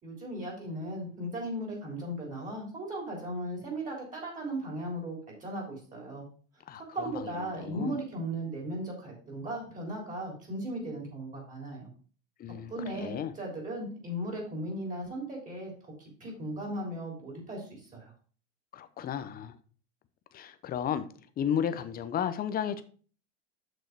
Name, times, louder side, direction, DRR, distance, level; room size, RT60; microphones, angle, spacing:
voice 1, 0.0-6.3 6.8-11.9 12.7-18.1, right 1 dB, 20° right, 3.6 m, -37 dB
voice 2, 6.7-8.0 12.4-12.7 13.0-13.3 18.7-19.5 20.3-21.1 21.4-22.8, left 8 dB, 25° left, 0.7 m, -33 dB
6.8 x 6.3 x 4.6 m
supercardioid pair, 130°, 38 cm